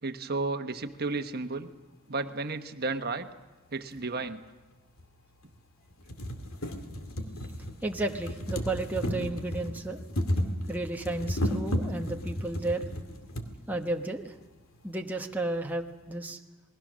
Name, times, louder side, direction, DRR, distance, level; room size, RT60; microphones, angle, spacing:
voice 1, 0.0-1.7 2.1-3.3 3.7-4.4, right 3 dB, 50° right, 8 dB, 1.2 m, -33 dB
sound 1, 3.9-4.0 5.0-5.1 5.5-5.6 5.9-13.5 14.4-14.5 14.7-14.8, equal, 85° left, 2.3 m, -33 dB
voice 2, 7.8-10.0 10.7-12.8 13.7-14.3 14.8-16.4, right 2 dB, 10° right, 2 dB, 1.1 m, -33 dB
28.5 x 20.5 x 6.3 m, 1.2 s
head